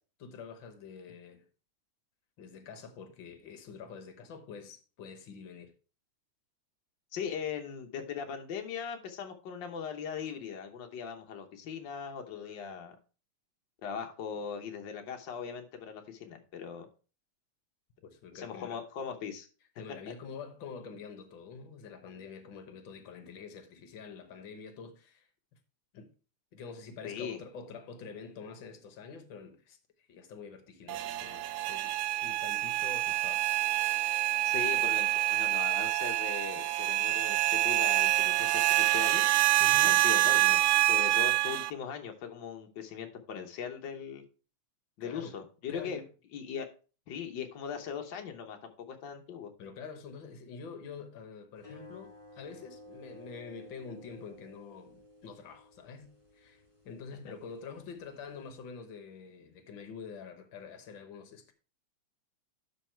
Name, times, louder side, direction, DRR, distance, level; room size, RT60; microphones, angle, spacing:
voice 1, 0.2-1.4 2.4-5.7 18.0-18.8 19.8-25.3 25.9-26.1 26.5-31.9 32.2-33.4 39.6-40.0 45.0-45.4 45.7-46.0 49.6-61.5, left 5 dB, 65° left, 1.2 m, -46 dB
voice 2, 7.1-12.9 13.8-16.9 18.3-19.5 27.0-27.4 34.4-39.2 39.8-44.2 45.0-46.0 46.3-46.7 47.1-49.5, left 7 dB, 90° left, 1.0 m, -39 dB
sound 1, 30.9-41.7, right 17 dB, 80° right, 1.5 m, -27 dB
sound 2, 51.6-58.5, equal, 20° left, 1.7 m, -55 dB
12.0 x 4.1 x 4.4 m
omnidirectional pair, 3.5 m